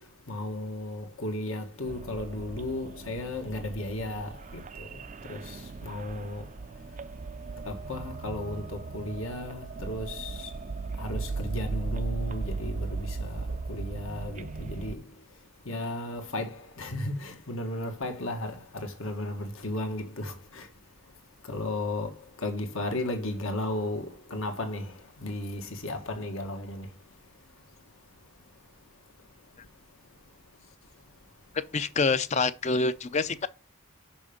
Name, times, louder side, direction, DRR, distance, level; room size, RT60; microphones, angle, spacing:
voice 1, 0.3-5.0 5.3-6.4 7.7-10.5 11.0-15.0 15.7-20.7 21.5-22.1 22.4-24.9 25.2-26.9, left 1 dB, 70° left, 1.7 m, -34 dB
sound 1, 1.9-14.9, right 4 dB, 35° right, 0.3 m, -37 dB
voice 2, 31.7-33.5, left 4 dB, 30° left, 0.5 m, -26 dB
6.2 x 5.9 x 5.1 m
head